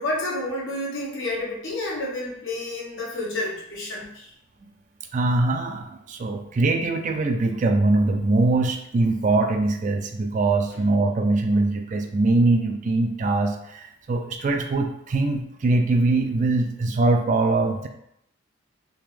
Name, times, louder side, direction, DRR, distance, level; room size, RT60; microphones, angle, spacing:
voice 1, 0.0-4.3, left 2 dB, 60° left, -4 dB, 1.1 m, -30 dB
voice 2, 5.1-17.9, right 2 dB, 35° right, 5 dB, 0.3 m, -22 dB
3.5 x 2.9 x 3.1 m, 0.76 s
head